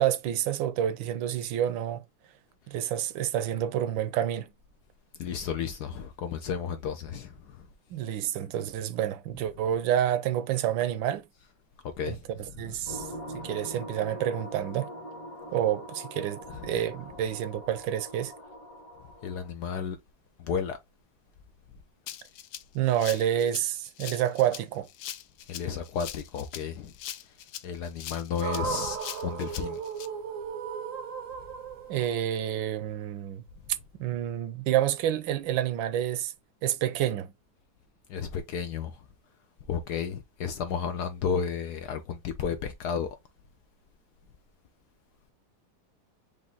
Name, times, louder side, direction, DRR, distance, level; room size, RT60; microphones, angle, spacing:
voice 1, 0.0-2.0 2.7-4.5 7.9-11.2 12.1-12.2 12.6-13.1 13.3-14.9 15.5-18.3 22.7-24.9 31.9-33.4 34.0-36.3 36.6-37.3, right 11 dB, 80° right, 1.3 m, -28 dB
voice 2, 5.1-7.7 11.8-13.0 16.5-16.7 19.2-20.0 20.4-20.8 25.5-26.9 27.2-29.8 38.1-39.1 39.7-43.2, left 7 dB, 70° left, 1.0 m, -33 dB
sound 1, 12.9-19.5, equal, 40° left, 1.8 m, -42 dB
Rattle (instrument), 22.1-30.1, left 11 dB, 85° left, 0.8 m, -42 dB
sound 2, 28.4-32.6, right 6 dB, 55° right, 0.9 m, -35 dB
5.1 x 2.6 x 3.7 m
omnidirectional pair, 2.1 m